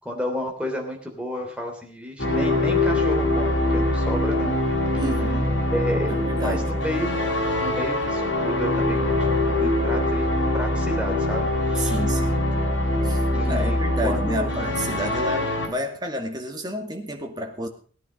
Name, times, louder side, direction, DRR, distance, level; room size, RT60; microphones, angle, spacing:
voice 1, 0.0-4.6 4.9-5.0 5.7-7.2 7.6-10.3 10.5-12.0 13.3-13.8 14.0-14.5, equal, 5° right, 1 dB, 3.3 m, -31 dB
sound 1, 2.2-15.7, left 1 dB, 75° left, 5.2 m, -23 dB
voice 2, 5.0-5.5 6.1-6.6 11.8-12.4 13.0-17.7, equal, 20° right, 2 dB, 2.3 m, -30 dB
18.5 x 10.0 x 5.3 m, 0.43 s
head